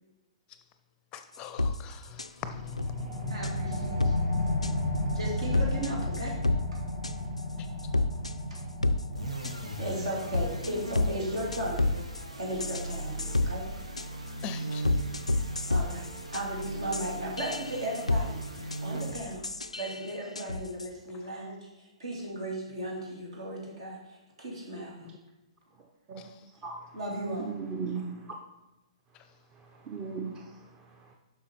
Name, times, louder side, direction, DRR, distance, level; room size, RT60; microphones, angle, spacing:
voice 1, 1.1-3.3 14.4-14.8, left 9 dB, 25° left, 10 dB, 0.6 m, -41 dB
sound 1, 1.3-1.8 2.2-2.3 2.8-2.9 3.4-4.2 4.6-5.0 5.5-6.6 7.0-7.4 7.8-9.0 9.4-9.5 10.2-12.2 12.6-13.5 14.0-14.1 14.4-14.5 14.8-20.9, left 2 dB, 90° left, 0.4 m, -29 dB
sound 2, 2.4-13.5, left 1 dB, 50° right, 1.7 m, -34 dB
voice 2, 3.3-4.2 5.1-6.3 8.5-8.6 9.8-11.9 12.4-13.6 15.7-19.5 19.8-25.0 26.9-27.5, right 1 dB, 65° right, -2 dB, 2.8 m, -36 dB
sound 3, 9.1-19.5, right 2 dB, 85° right, 1.1 m, -38 dB
voice 3, 26.6-27.0 27.4-28.4 29.5-31.1, right 5 dB, 25° right, 2 dB, 0.8 m, -38 dB
7.6 x 5.8 x 4.4 m, 1.0 s
figure-of-eight pair, 115°, 3 cm